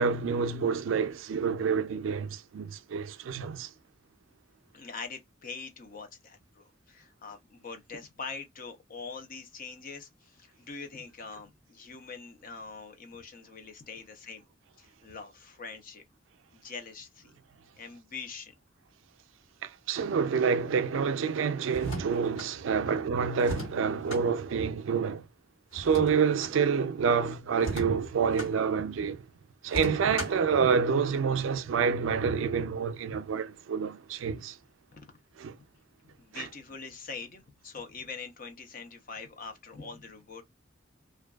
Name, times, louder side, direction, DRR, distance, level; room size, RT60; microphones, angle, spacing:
voice 1, 0.0-3.7 19.6-25.3 25.7-29.2 29.6-34.6 35.4-35.6 36.3-36.5, right 6 dB, 80° right, 0.4 m, -28 dB
voice 2, 4.7-14.5 14.8-16.0 16.5-17.3 17.8-18.5 22.7-23.0 34.9-35.0 36.0-40.4, left 5 dB, 45° left, 0.7 m, -43 dB
sound 1, 21.7-22.5 23.4-24.3 25.7-26.6 27.6-28.5 29.7-30.5, right 1 dB, 80° left, 1.8 m, -37 dB
2.5 x 2.3 x 2.2 m
head